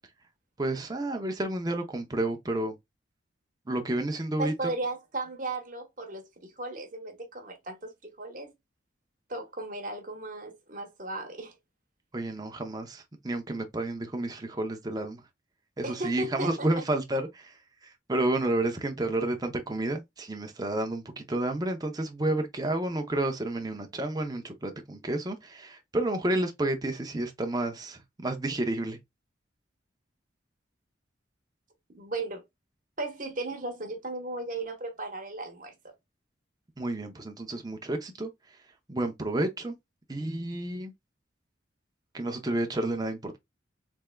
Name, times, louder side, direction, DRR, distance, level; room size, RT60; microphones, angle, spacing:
voice 1, 0.6-2.7 3.7-4.7 12.1-15.2 15.8-29.0 36.8-38.3 38.9-39.7 40.1-40.9 42.1-43.4, right 1 dB, 20° right, 0.6 m, -30 dB
voice 2, 4.4-8.5 9.3-11.5 15.8-16.8 31.9-32.4 33.0-35.7, right 2 dB, 45° right, 1.0 m, -36 dB
3.4 x 3.3 x 2.2 m
head